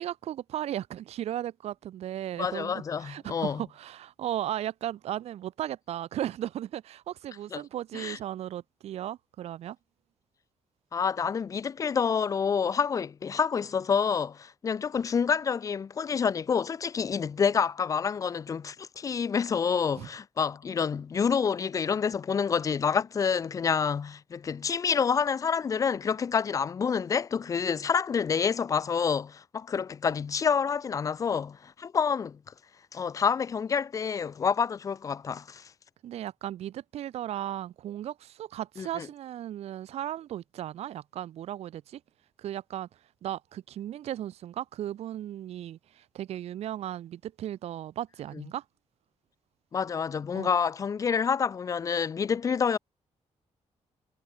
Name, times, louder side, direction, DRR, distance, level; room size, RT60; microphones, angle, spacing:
voice 1, 0.0-9.8 19.9-20.1 36.0-42.0 42.4-42.9 43.2-48.6 50.3-50.5, right 12 dB, 60° right, 0.4 m, -36 dB
voice 2, 2.4-3.6 7.5-7.6 7.9-8.2 10.9-32.4 32.9-35.7 38.8-39.1 48.4-48.5 49.7-52.8, left 6 dB, 30° left, 0.3 m, -28 dB
wide cardioid pair, 175°, 12 cm